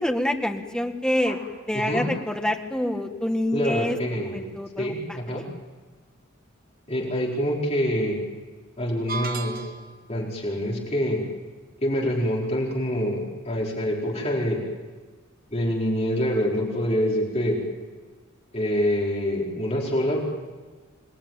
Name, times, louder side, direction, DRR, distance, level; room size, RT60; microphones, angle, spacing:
voice 1, 0.0-1.4 1.7-4.0 4.3-5.4, left 1 dB, 5° left, 3 dB, 1.9 m, -27 dB
voice 2, 3.5-4.5 4.8-4.9 5.3-5.4 6.9-8.2 8.8-9.7 10.1-11.2 11.8-14.6 15.5-17.6 18.5-20.2, equal, 30° left, -3 dB, 4.8 m, -25 dB
sound 1, 9.1-10.1, right 4 dB, 50° right, 1.4 m, -33 dB
27.0 x 20.5 x 9.2 m, 1.4 s
head